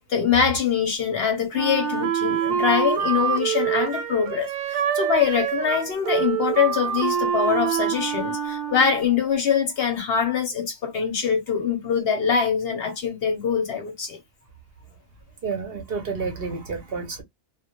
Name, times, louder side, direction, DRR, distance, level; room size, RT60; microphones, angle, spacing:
voice 1, 0.1-14.2, left 7 dB, 60° left, 0.7 m, -23 dB
Wind instrument woodwind instrument, 1.5-9.1, right 8 dB, 85° right, 1.0 m, -26 dB
voice 2, 15.4-17.2, right 4 dB, 55° right, 0.7 m, -30 dB
2.1 x 2.1 x 2.8 m
omnidirectional pair, 1.3 m